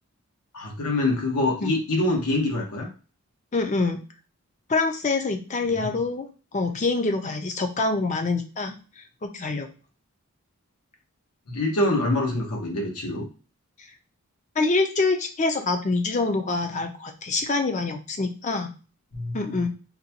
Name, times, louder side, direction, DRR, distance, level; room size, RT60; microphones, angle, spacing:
voice 1, 0.5-2.9 5.8-5.9 11.5-13.3 19.1-19.4, left 2 dB, 85° left, -1 dB, 1.1 m, -25 dB
voice 2, 3.5-4.0 4.7-9.7 14.6-18.7 19.3-19.7, left 3 dB, 30° left, 6 dB, 0.4 m, -26 dB
3.9 x 2.2 x 2.8 m, 0.35 s
head